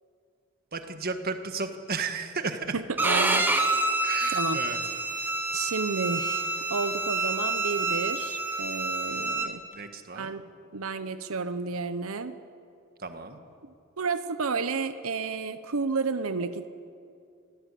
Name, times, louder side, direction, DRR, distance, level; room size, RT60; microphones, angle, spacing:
voice 1, 0.7-2.7 4.0-4.9 9.7-10.3 13.0-13.4, right 4 dB, 45° right, 7 dB, 1.6 m, -34 dB
voice 2, 2.7-3.5 4.3-5.0 5.5-9.6 10.1-10.4 10.7-12.3 14.0-16.7, right 4 dB, 75° right, 11 dB, 0.8 m, -31 dB
Bowed string instrument, 3.0-9.5, right 2 dB, 10° right, 1.5 m, -28 dB
24.5 x 16.5 x 8.4 m, 2.5 s
head